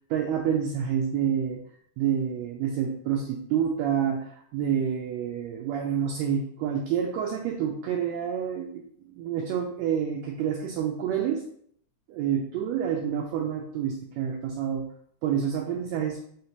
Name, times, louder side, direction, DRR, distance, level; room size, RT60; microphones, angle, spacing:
voice 1, 0.1-1.6 2.0-11.4 12.1-14.9 15.2-16.2, right 8 dB, 80° right, 2 dB, 1.6 m, -28 dB
5.6 x 3.1 x 2.9 m, 0.65 s
omnidirectional pair, 3.4 m